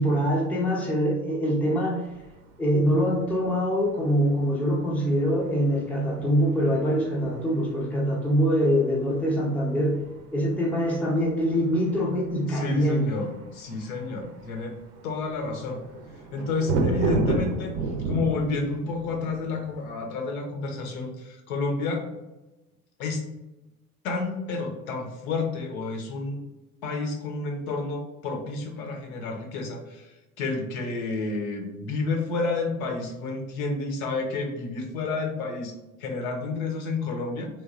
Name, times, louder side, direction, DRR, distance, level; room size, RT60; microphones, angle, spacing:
voice 1, 0.0-2.1 2.6-10.0 10.3-13.1, equal, 5° left, -3 dB, 0.5 m, -24 dB
sound 1, 2.0-19.9, right 3 dB, 55° right, 0.5 m, -33 dB
voice 2, 12.5-14.8 15.0-15.8 16.3-17.7 18.1-22.0 23.0-23.2 24.0-26.4 26.8-30.1 30.4-35.7 36.0-37.5, left 3 dB, 70° left, 3 dB, 0.8 m, -30 dB
3.0 x 2.2 x 2.4 m, 1.0 s
hypercardioid pair, 80°, 44 cm